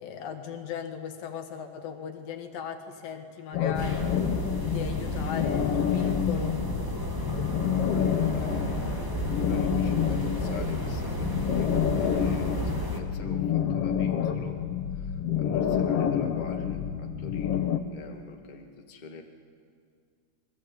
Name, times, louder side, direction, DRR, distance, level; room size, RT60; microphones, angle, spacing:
voice 1, 0.0-6.6, left 7 dB, 80° left, 5 dB, 3.4 m, -38 dB
sound 1, 3.5-17.8, left 9 dB, 60° left, 1.6 m, -28 dB
sound 2, 3.7-13.0, right 1 dB, 10° right, 1.2 m, -33 dB
voice 2, 7.9-14.6 14.9-19.2, left 3 dB, 20° left, 2 dB, 1.4 m, -44 dB
26.5 x 21.5 x 8.7 m, 2.2 s
omnidirectional pair, 4.0 m